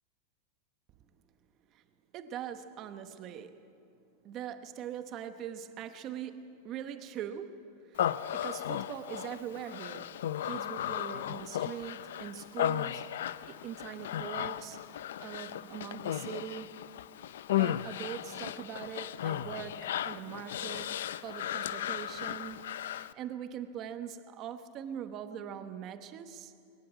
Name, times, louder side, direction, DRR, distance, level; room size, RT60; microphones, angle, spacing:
voice 1, 2.1-3.6 4.2-10.1 10.4-16.8 17.5-20.9 21.2-22.7 22.9-26.5, right 9 dB, 30° right, 9 dB, 1.0 m, -42 dB
Human voice, 8.0-23.1, left 11 dB, 80° left, 0.5 m, -35 dB
21.5 x 18.5 x 8.2 m, 2.5 s
supercardioid pair, 170°, 0 cm